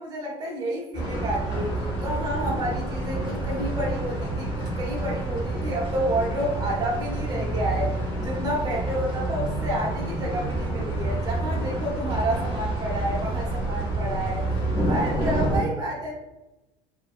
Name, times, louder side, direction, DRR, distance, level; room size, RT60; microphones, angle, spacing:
voice 1, 0.0-14.4 14.9-16.1, right 1 dB, 30° right, -3 dB, 0.7 m, -30 dB
sound 1, 0.9-15.6, right 1 dB, 35° left, 0.9 m, -28 dB
2.5 x 2.1 x 2.4 m, 0.98 s
cardioid pair, 145°, 13 cm